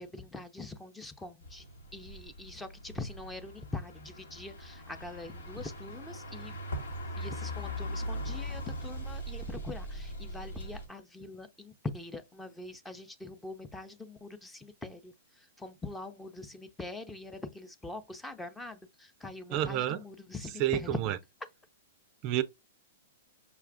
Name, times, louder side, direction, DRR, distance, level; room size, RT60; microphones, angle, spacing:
voice 1, 0.0-1.6 1.9-6.6 7.2-15.1 15.6-21.0, left 3 dB, 10° left, 0.6 m, -43 dB
sound 1, 1.4-10.9, equal, 85° left, 1.6 m, -40 dB
voice 2, 19.5-20.0 20.6-21.2 22.2-22.4, right 13 dB, 40° right, 0.4 m, -29 dB
5.8 x 2.4 x 3.4 m
hypercardioid pair, 125°, 0 cm